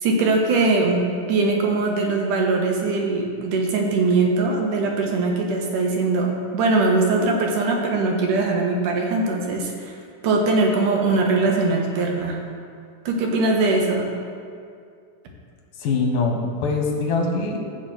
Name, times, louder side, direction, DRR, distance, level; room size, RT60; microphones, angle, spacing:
voice 1, 0.0-10.0 10.2-12.4 13.1-14.1, right 3 dB, 75° right, 1 dB, 2.8 m, -21 dB
voice 2, 15.8-17.6, left 3 dB, 80° left, 0 dB, 3.0 m, -23 dB
14.0 x 4.8 x 7.9 m, 2.3 s
omnidirectional pair, 3.7 m